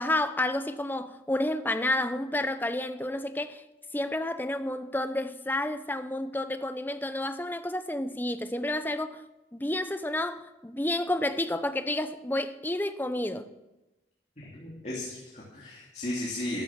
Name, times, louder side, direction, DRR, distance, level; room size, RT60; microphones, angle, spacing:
voice 1, 0.0-3.6 3.9-9.2 9.5-13.5, left 1 dB, 10° left, 0.7 m, -30 dB
voice 2, 14.4-16.6, left 1 dB, 40° left, 3.1 m, -35 dB
13.0 x 13.0 x 7.4 m
head